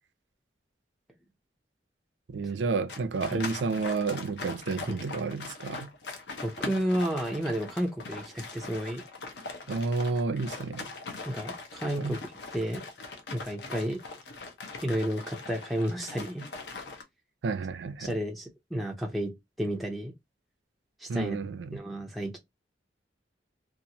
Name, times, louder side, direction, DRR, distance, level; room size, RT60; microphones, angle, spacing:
voice 1, 2.3-5.9 9.7-10.9 12.0-12.2 17.4-18.1 21.1-21.8, right 4 dB, 75° right, 0.4 m, -31 dB
sound 1, 2.9-17.0, left 3 dB, 65° left, 0.7 m, -41 dB
voice 2, 6.4-9.0 11.3-12.2 12.5-12.8 13.3-14.0 14.8-16.4 18.0-20.1 21.0-22.4, equal, ahead, 0.4 m, -32 dB
2.8 x 2.4 x 2.6 m
head